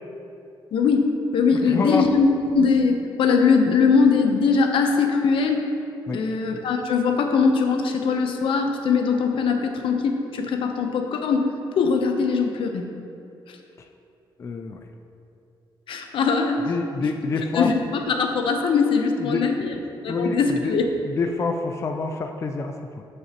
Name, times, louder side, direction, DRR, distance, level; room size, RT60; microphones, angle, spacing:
voice 1, 0.7-2.3 2.5-5.6 6.1-12.9 15.9-16.6 17.5-19.7 20.0-20.9, left 5 dB, 75° left, 4 dB, 0.8 m, -21 dB
voice 2, 1.7-2.0 6.1-6.2 14.4-14.8 16.7-17.7 19.2-19.4 20.1-20.4 20.6-20.7 21.1-23.0, left 4 dB, 30° left, 5 dB, 0.4 m, -27 dB
12.0 x 6.5 x 2.9 m, 2.6 s
wide cardioid pair, 155°, 9 cm